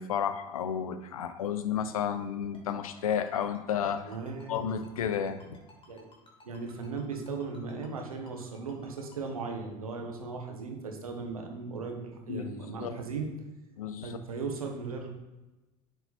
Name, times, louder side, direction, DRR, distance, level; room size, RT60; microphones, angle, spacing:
voice 1, 0.0-4.1 4.5-5.6 12.3-12.4 12.8-13.0 13.8-14.2, left 8 dB, 85° left, 11 dB, 0.6 m, -32 dB
Ringtone, 2.5-9.3, left 3 dB, 30° left, 2.4 m, -56 dB
voice 2, 4.0-4.8 5.9-6.1 6.4-13.3 14.0-15.1, right 4 dB, 85° right, 3 dB, 1.2 m, -37 dB
9.8 x 4.5 x 4.2 m, 1.1 s
hypercardioid pair, 70°, 18 cm